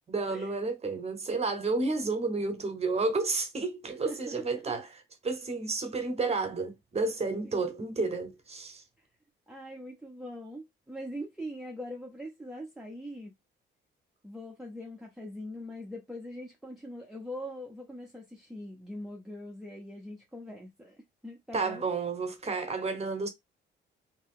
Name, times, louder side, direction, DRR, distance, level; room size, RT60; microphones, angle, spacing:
voice 1, 0.1-8.8 21.5-23.3, right 3 dB, 30° right, 1.0 m, -31 dB
voice 2, 4.0-4.4 7.4-7.7 9.5-13.3 14.2-21.9, equal, ahead, 0.7 m, -42 dB
2.7 x 2.2 x 3.6 m
cardioid pair, 85°, 21 cm